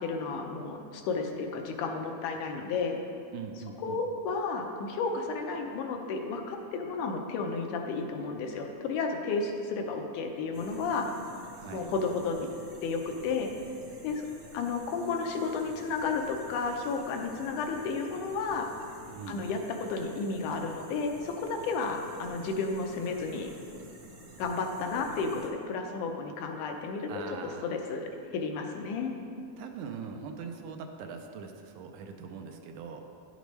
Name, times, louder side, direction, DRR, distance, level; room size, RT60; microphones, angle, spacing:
voice 1, 0.0-3.0 3.8-11.1 11.7-12.5 12.8-13.5 14.0-14.3 14.5-18.7 19.3-23.5 24.4-27.2 27.6-29.1, left 4 dB, 80° left, 3 dB, 2.1 m, -32 dB
voice 2, 3.3-4.0 11.5-11.9 19.1-19.4 23.1-23.4 27.1-27.7 29.6-33.0, right 6 dB, 80° right, 4 dB, 2.0 m, -42 dB
sound 1, 10.5-25.5, right 2 dB, 55° right, 1.4 m, -51 dB
11.0 x 6.7 x 3.1 m, 2.6 s
omnidirectional pair, 3.7 m